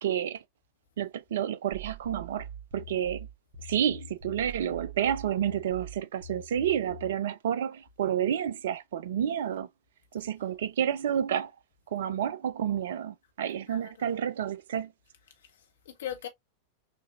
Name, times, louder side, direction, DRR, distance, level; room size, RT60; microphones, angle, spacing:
voice 1, 0.0-0.4 1.0-2.5 2.7-3.3 3.6-9.7 10.1-11.5 11.9-14.9, right 9 dB, 60° right, 0.3 m, -30 dB
sound 1, 1.7-7.2, right 3 dB, 40° right, 1.7 m, -44 dB
voice 2, 13.7-14.2 15.4-16.3, left 10 dB, 60° left, 1.1 m, -41 dB
6.1 x 2.6 x 2.4 m
figure-of-eight pair, 90°, 0 cm